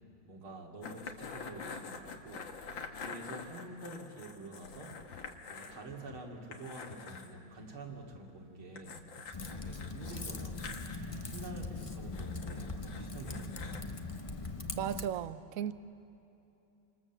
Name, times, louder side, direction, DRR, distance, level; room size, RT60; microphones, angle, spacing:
voice 1, 0.2-2.5 2.9-5.0 5.5-9.1 9.5-10.6 11.2-13.9, right 2 dB, 85° right, 3.5 m, -48 dB
sound 1, 0.8-5.8 6.1-6.2 6.5-7.3 8.8-11.0 12.1-13.8, left 5 dB, 65° left, 2.1 m, -46 dB
sound 2, 4.9-11.6, left 5 dB, 85° left, 3.1 m, -58 dB
Typing, 9.3-15.1, left 3 dB, 30° left, 0.6 m, -41 dB
voice 2, 14.8-15.7, right 10 dB, 65° right, 0.8 m, -35 dB
28.5 x 26.0 x 7.3 m
omnidirectional pair, 2.3 m